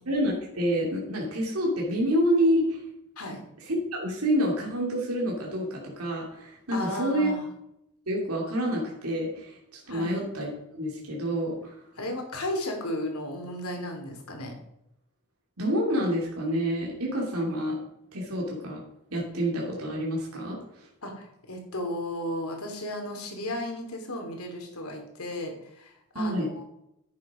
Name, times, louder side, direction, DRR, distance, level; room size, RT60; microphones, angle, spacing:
voice 1, 0.1-2.8 3.7-7.3 8.1-11.8 15.6-17.8 18.1-18.8 19.1-20.9 26.1-26.5, equal, 75° right, -2 dB, 3.0 m, -28 dB
voice 2, 6.7-7.4 9.9-10.1 12.0-14.5 21.0-26.6, left 1 dB, 75° left, 3 dB, 3.1 m, -34 dB
11.0 x 8.5 x 5.1 m, 0.80 s
head